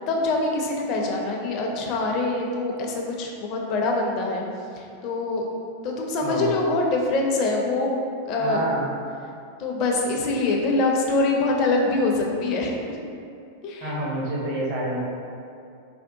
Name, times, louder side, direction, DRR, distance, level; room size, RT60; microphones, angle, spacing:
voice 1, 0.1-4.4 4.8-5.5 5.8-8.6 9.6-12.7 13.6-13.9, left 2 dB, 40° left, 0 dB, 0.4 m, -24 dB
voice 2, 6.2-6.5 8.4-8.9 13.8-15.0, right 1 dB, 45° right, -4 dB, 0.7 m, -28 dB
3.4 x 2.3 x 2.6 m, 2.5 s
figure-of-eight pair, 90°, 0 cm